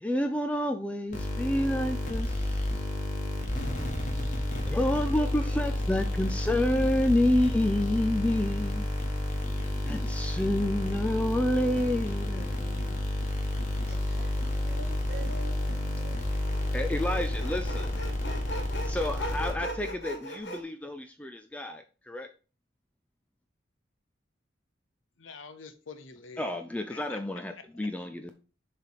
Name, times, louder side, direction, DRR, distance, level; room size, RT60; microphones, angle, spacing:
voice 1, 0.0-2.6 4.6-8.9 9.6-13.0 16.7-18.0 18.8-22.3 26.4-28.3, left 1 dB, 5° left, 6 dB, 0.3 m, -29 dB
sound 1, 1.1-19.9, left 1 dB, 40° left, 1.4 m, -30 dB
voice 2, 4.7-5.6 13.9-16.4, right 3 dB, 55° right, 3 dB, 1.9 m, -48 dB
Sawing, 16.4-20.6, equal, 60° left, 1.5 m, -39 dB
voice 3, 25.2-26.5 26.9-27.2 27.6-27.9, left 4 dB, 90° left, 10 dB, 0.8 m, -46 dB
6.7 x 3.3 x 4.7 m, 0.35 s
head